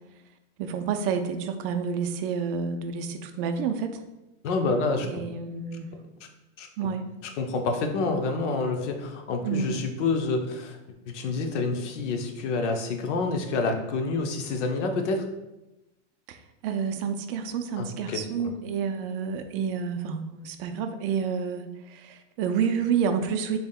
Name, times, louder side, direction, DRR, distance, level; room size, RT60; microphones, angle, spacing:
voice 1, 0.6-4.0 5.0-5.9 6.8-7.1 9.4-9.8 16.3-23.6, right 6 dB, 50° right, 7 dB, 0.4 m, -29 dB
voice 2, 4.4-5.2 6.6-6.7 7.4-10.8 11.1-15.3 17.8-18.5, left 3 dB, 70° left, 4 dB, 0.7 m, -28 dB
3.8 x 3.5 x 2.3 m, 0.97 s
hypercardioid pair, 120°, 37 cm